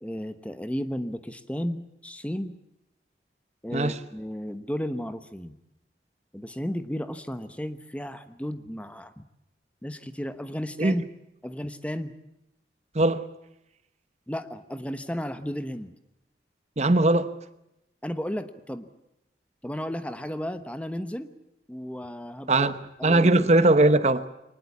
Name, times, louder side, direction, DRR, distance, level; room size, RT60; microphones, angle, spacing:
voice 1, 0.0-2.6 3.6-5.6 6.3-9.2 9.8-11.0 11.4-12.2 14.3-15.9 18.0-18.9 19.6-21.3 21.7-22.7 23.0-23.7, equal, 5° left, 1.0 m, -33 dB
voice 2, 12.9-13.2 16.8-17.3 22.5-22.7 23.0-24.3, right 2 dB, 40° right, 0.9 m, -20 dB
23.5 x 20.0 x 8.3 m
head